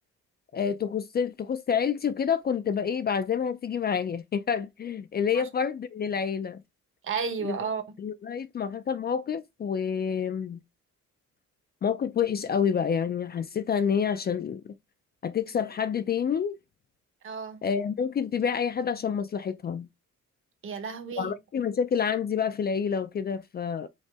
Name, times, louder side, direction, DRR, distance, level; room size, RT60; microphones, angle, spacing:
voice 1, 0.5-6.6 7.4-7.6 8.0-10.6 11.8-14.7 15.2-16.6 17.6-19.9 21.2-23.9, left 7 dB, 35° left, 0.4 m, -28 dB
voice 2, 7.0-7.8 17.2-17.6 20.6-21.3, right 6 dB, 45° right, 1.1 m, -32 dB
5.4 x 2.9 x 3.4 m
cardioid pair, 150°, 29 cm